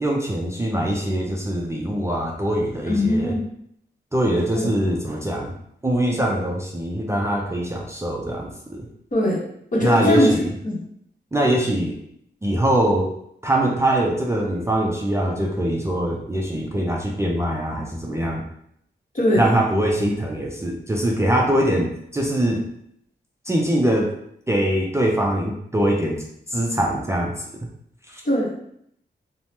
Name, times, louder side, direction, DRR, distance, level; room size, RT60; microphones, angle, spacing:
voice 1, 0.0-3.4 4.1-5.5 5.8-8.9 9.8-10.5 11.3-12.0 12.4-13.1 13.4-18.4 19.4-22.7 23.5-24.1 24.5-27.3 28.1-28.2, right 1 dB, 15° right, -1 dB, 0.4 m, -22 dB
voice 2, 2.9-3.4 4.5-4.7 9.1-9.4 9.7-10.3 10.6-10.8 19.1-19.5 28.2-28.5, left 1 dB, 40° left, -3 dB, 1.0 m, -20 dB
2.7 x 2.0 x 3.3 m, 0.71 s
cardioid pair, 60°, 19 cm